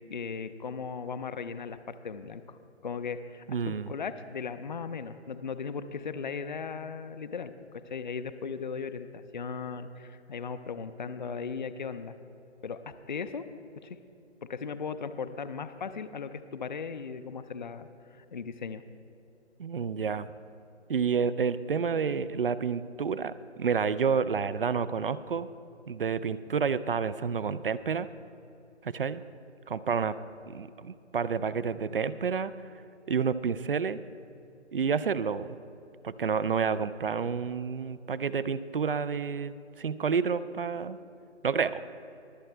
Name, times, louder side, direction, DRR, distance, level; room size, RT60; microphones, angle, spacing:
voice 1, 0.0-2.6 2.8-7.5 7.9-12.1 12.6-13.5 13.8-14.0 14.4-18.8, left 5 dB, 40° left, 11 dB, 0.5 m, -37 dB
voice 2, 3.5-3.9 19.6-20.3 20.9-25.5 25.9-28.1 28.8-29.2 29.7-30.1 30.5-32.5 33.1-34.0 34.7-35.5 36.0-41.0 41.4-41.8, right 6 dB, 50° right, 16 dB, 0.4 m, -29 dB
22.5 x 7.8 x 3.3 m, 2.7 s
figure-of-eight pair, 155°, 35 cm